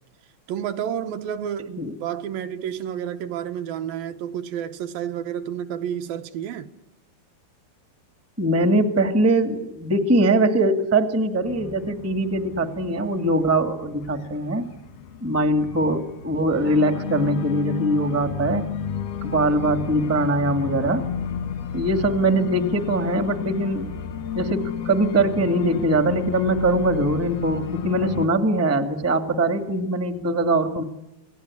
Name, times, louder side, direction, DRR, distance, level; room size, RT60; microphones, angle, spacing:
voice 1, 0.5-6.7, right 9 dB, 75° right, 2.8 m, -30 dB
voice 2, 8.4-14.6 15.2-18.7 19.2-21.0 21.7-23.9 24.3-30.8, right 1 dB, 10° right, 0.7 m, -22 dB
Organ, 11.4-28.3, left 7 dB, 80° left, 4.0 m, -32 dB
27.5 x 18.5 x 9.8 m
omnidirectional pair, 4.3 m